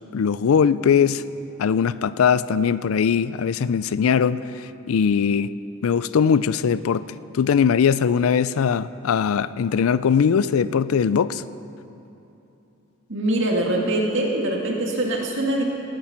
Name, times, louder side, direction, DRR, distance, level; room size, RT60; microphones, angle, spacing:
voice 1, 0.1-1.2 1.6-5.5 5.8-11.4, left 7 dB, 85° left, 16 dB, 0.4 m, -20 dB
voice 2, 13.1-15.6, right 1 dB, 60° right, -1 dB, 2.0 m, -23 dB
19.0 x 9.2 x 5.9 m, 2.9 s
head